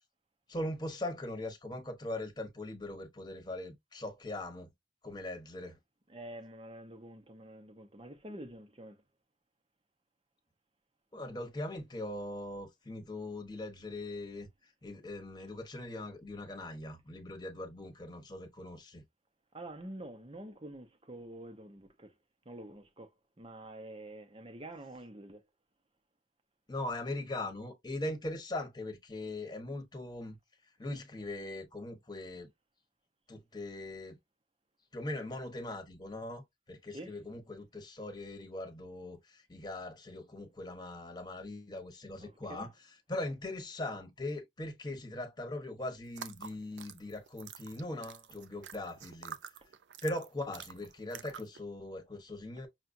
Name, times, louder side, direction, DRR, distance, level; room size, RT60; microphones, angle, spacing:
voice 1, 0.5-4.7 5.0-5.8 11.1-14.5 14.8-19.0 26.7-30.4 30.8-32.5 33.3-34.2 34.9-49.4 50.0-52.7, left 1 dB, 25° left, 1.1 m, -40 dB
voice 2, 6.1-9.0 19.5-22.1 22.5-23.1 23.4-25.4 36.9-37.2 42.2-42.7, right 1 dB, 30° right, 0.8 m, -47 dB
sound 1, 46.1-51.6, right 8 dB, 85° right, 0.5 m, -48 dB
5.8 x 2.4 x 2.6 m
head